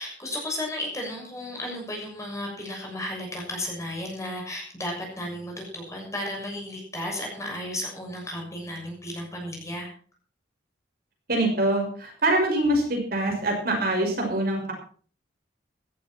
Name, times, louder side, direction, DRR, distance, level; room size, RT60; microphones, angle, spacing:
voice 1, 0.0-9.9, left 1 dB, 15° left, 0 dB, 6.9 m, -34 dB
voice 2, 11.3-14.7, right 1 dB, 50° right, 1 dB, 6.1 m, -24 dB
16.5 x 14.0 x 4.5 m, 0.43 s
head